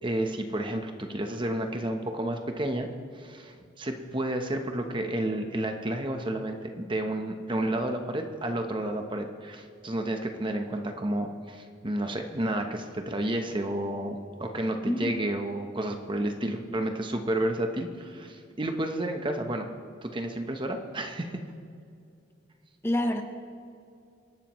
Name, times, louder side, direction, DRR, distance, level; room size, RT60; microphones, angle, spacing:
voice 1, 0.0-2.9 3.2-19.7 20.0-21.4, right 1 dB, 25° right, 5 dB, 0.9 m, -31 dB
voice 2, 14.8-15.1 22.8-23.2, left 1 dB, 15° left, 4 dB, 1.0 m, -27 dB
26.5 x 11.5 x 3.1 m, 2.4 s
head